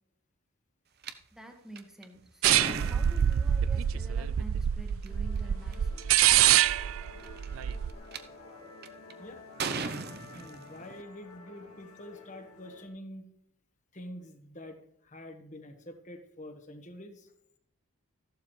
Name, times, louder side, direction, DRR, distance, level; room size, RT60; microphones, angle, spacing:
sound 1, 1.0-1.1 1.8-3.6 4.9-5.1 5.7-5.8 6.0-6.5 7.2-8.2 8.8-9.1 9.6-11.0, right 4 dB, 45° right, 0.7 m, -36 dB
voice 1, 1.3-6.0, right 1 dB, ahead, 2 dB, 1.6 m, -48 dB
sound 2, 2.4-7.9, right 11 dB, 65° right, 0.3 m, -25 dB
Musical instrument, 5.1-12.9, left 3 dB, 80° left, 2.3 m, -51 dB
voice 2, 10.3-13.3 13.9-17.3, left 1 dB, 35° left, 6 dB, 1.4 m, -46 dB
14.5 x 12.0 x 3.2 m, 0.77 s
head